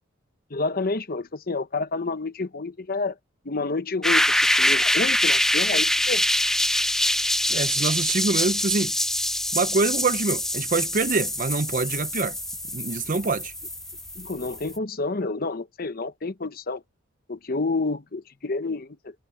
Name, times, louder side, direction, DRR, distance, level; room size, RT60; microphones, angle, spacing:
voice 1, 0.5-3.1 3.4-6.2 14.2-16.8 17.3-19.1, left 3 dB, 45° left, 0.9 m, -29 dB
sound 1, 4.0-14.8, left 1 dB, ahead, 0.4 m, -24 dB
voice 2, 7.5-8.9 9.5-12.4 12.7-13.5, right 3 dB, 40° right, 0.6 m, -25 dB
head